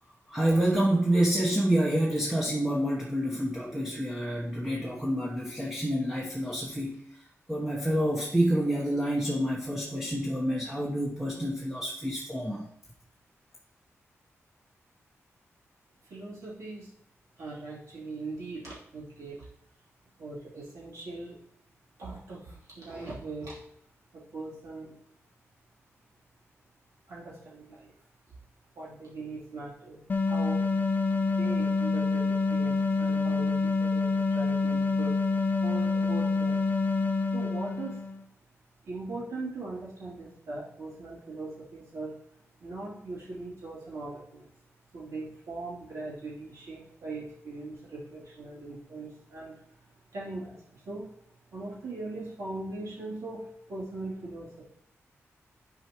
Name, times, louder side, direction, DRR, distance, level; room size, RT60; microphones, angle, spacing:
voice 1, 0.3-7.0 7.5-12.7, right 1 dB, 5° right, -4 dB, 1.0 m, -28 dB
voice 2, 16.1-16.9 17.4-19.4 20.2-21.4 22.0-23.5 24.1-24.9 27.1-27.9 28.7-30.6 31.4-35.2 35.6-36.7 37.3-38.0 38.8-42.1 42.6-44.5 44.9-49.6 50.1-51.1 51.5-54.6, right 2 dB, 85° right, -8 dB, 3.1 m, -40 dB
sound 1, 30.1-38.2, left 3 dB, 35° left, 0.4 m, -27 dB
9.7 x 4.8 x 3.0 m, 0.69 s
wide cardioid pair, 140°, 5 cm